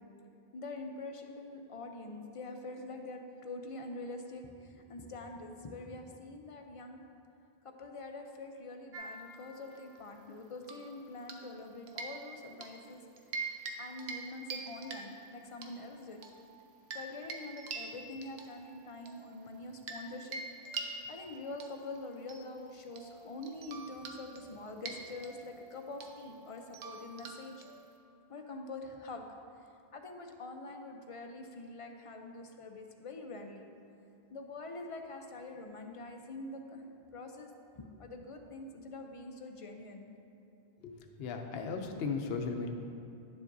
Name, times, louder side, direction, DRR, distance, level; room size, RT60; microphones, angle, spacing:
voice 1, 0.5-7.0 7.6-13.0 13.8-16.2 16.9-20.4 20.8-27.6 28.3-29.3 29.9-33.7 34.3-36.8 37.1-37.5 37.7-40.1, left 2 dB, 40° left, 4 dB, 0.5 m, -45 dB
sound 1, 8.9-10.0 10.6-11.6 11.9-12.8 13.2-13.7 14.0-14.2 14.5-15.7 16.2-20.1 20.3-28.0, right 4 dB, 90° right, 1.0 m, -45 dB
voice 2, 40.8-42.7, left 4 dB, 75° left, 4 dB, 0.9 m, -36 dB
10.5 x 7.3 x 2.6 m, 2.8 s
omnidirectional pair, 1.0 m